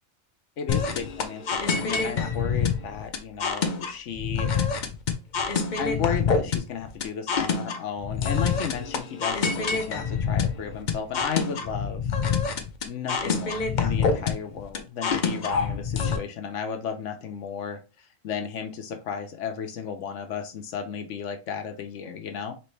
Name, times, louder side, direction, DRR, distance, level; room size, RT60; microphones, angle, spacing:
voice 1, 0.6-4.7 5.8-12.0 12.9-22.5, left 7 dB, 70° left, 7 dB, 1.0 m, -34 dB
sound 1, 0.7-16.2, left 5 dB, 50° left, 0.6 m, -26 dB
4.3 x 3.1 x 3.2 m, 0.30 s
omnidirectional pair, 1.3 m